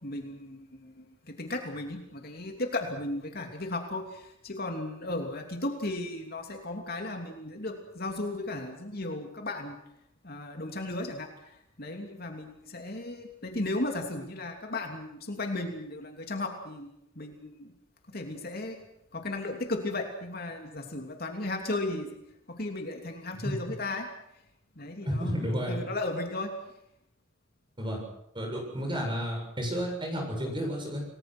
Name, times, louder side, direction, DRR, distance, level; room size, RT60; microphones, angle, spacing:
voice 1, 0.0-1.0 1.4-9.8 10.2-11.3 11.8-16.9 17.2-17.7 18.1-18.8 19.1-22.1 22.5-24.1 24.8-25.3 25.7-26.5, left 2 dB, 50° left, 3 dB, 3.0 m, -35 dB
voice 2, 25.0-25.8 27.8-28.0 28.3-31.0, equal, 25° right, 1 dB, 7.3 m, -31 dB
29.0 x 19.5 x 6.3 m, 0.80 s
head